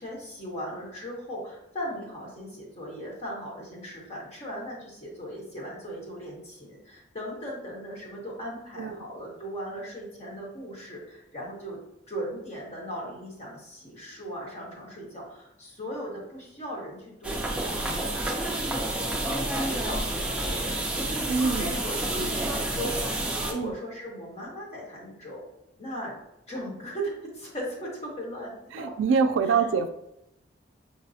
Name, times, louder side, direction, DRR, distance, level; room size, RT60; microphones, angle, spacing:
voice 1, 0.0-11.8 12.1-21.0 21.6-23.0 23.4-25.4 25.8-26.2 26.5-28.9, equal, 35° left, -4 dB, 1.1 m, -38 dB
sound 1, 17.2-23.5, right 1 dB, 5° right, 0.4 m, -29 dB
voice 2, 21.3-21.8 22.2-22.5 23.5-23.7 28.7-29.9, right 5 dB, 90° right, 9 dB, 0.3 m, -25 dB
5.1 x 2.0 x 2.6 m, 0.83 s
head